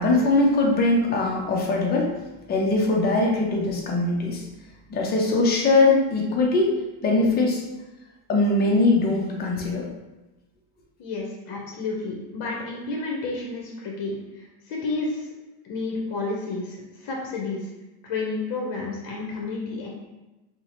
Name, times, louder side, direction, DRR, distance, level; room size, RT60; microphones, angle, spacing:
voice 1, 0.0-2.1 2.5-4.4 4.9-6.7 7.0-7.6 8.3-9.9, left 2 dB, 25° left, -1 dB, 0.3 m, -21 dB
voice 2, 11.0-15.3 15.6-17.7 18.0-19.9, left 3 dB, 50° left, -2 dB, 0.7 m, -31 dB
2.7 x 2.1 x 2.8 m, 1.0 s
supercardioid pair, 115°, 50 cm